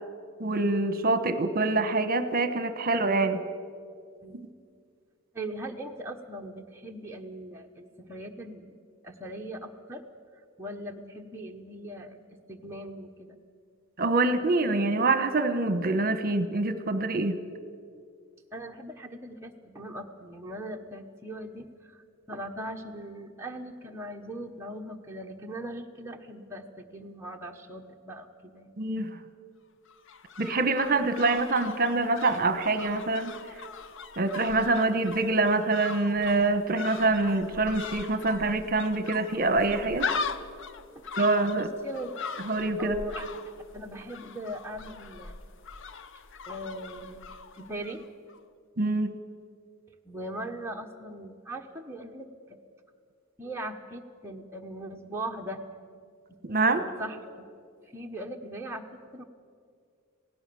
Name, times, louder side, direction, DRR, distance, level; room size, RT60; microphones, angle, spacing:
voice 1, 0.4-3.4 14.0-17.4 28.8-29.1 30.4-33.3 34.2-40.1 41.2-41.7 42.5-43.0 48.8-49.1 56.4-56.8, right 2 dB, 45° right, 11 dB, 1.2 m, -25 dB
voice 2, 5.3-8.8 9.0-10.0 10.6-13.4 18.5-21.9 22.3-28.7 40.9-41.1 41.6-42.1 42.8-45.3 46.4-47.2 47.6-48.0 50.0-52.6 53.4-55.6 56.7-57.4 57.9-58.8 59.1-59.2, right 1 dB, 10° right, 1 dB, 1.1 m, -40 dB
sound 1, 29.9-48.0 48.3-48.4, left 5 dB, 65° left, 0.8 m, -40 dB
27.0 x 17.5 x 7.0 m, 2.2 s
head